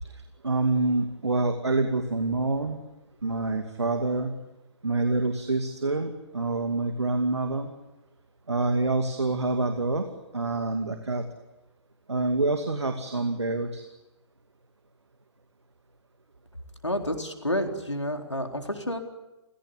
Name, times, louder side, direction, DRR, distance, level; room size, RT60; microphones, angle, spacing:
voice 1, 0.0-2.8 3.2-4.3 4.8-7.7 8.5-10.0 10.3-11.2 12.1-13.8, right 3 dB, 70° right, 6 dB, 2.5 m, -27 dB
voice 2, 16.8-19.0, equal, 85° left, 4 dB, 4.1 m, -29 dB
29.5 x 17.0 x 9.7 m, 1.0 s
figure-of-eight pair, 130°, 15 cm